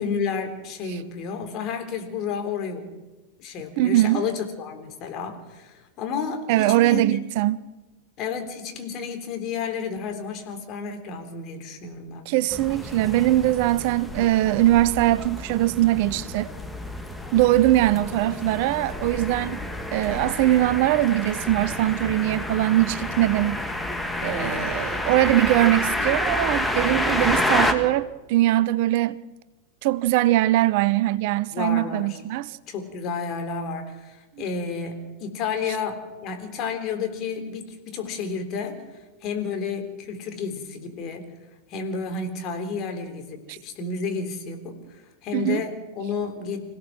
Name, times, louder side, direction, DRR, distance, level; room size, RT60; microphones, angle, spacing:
voice 1, 0.0-2.9 3.4-7.2 8.2-12.3 24.3-24.8 31.5-32.2 32.7-38.8 39.2-41.3 41.7-46.8, left 5 dB, 35° left, 3.7 m, -31 dB
voice 2, 3.8-4.2 6.5-7.6 12.3-16.5 17.3-19.6 19.9-23.6 24.2-29.2 29.8-32.6 43.5-43.6 45.3-45.6, right 15 dB, 50° right, 0.6 m, -21 dB
sound 1, 12.5-27.7, left 1 dB, 5° left, 2.1 m, -29 dB
26.5 x 16.5 x 6.3 m
figure-of-eight pair, 90°, 0 cm